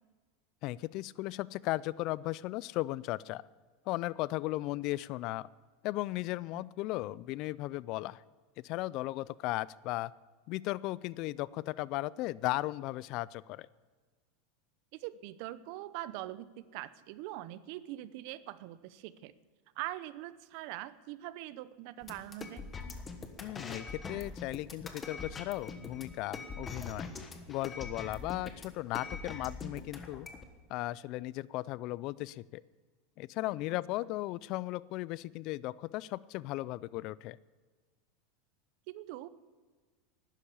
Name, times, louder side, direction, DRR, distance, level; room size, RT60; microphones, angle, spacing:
voice 1, 0.6-3.4 3.9-5.5 5.8-8.2 8.6-10.1 10.5-13.7 23.4-27.1 27.5-30.3 30.7-32.6 33.2-37.4, left 18 dB, 45° left, 21 dB, 0.3 m, -36 dB
voice 2, 14.9-19.3 19.8-22.7 38.9-39.3, right 15 dB, 55° right, 16 dB, 0.7 m, -43 dB
sound 1, 22.0-30.4, left 4 dB, 20° left, 1.3 m, -43 dB
12.0 x 10.0 x 8.5 m, 1.4 s
supercardioid pair, 150°, 0 cm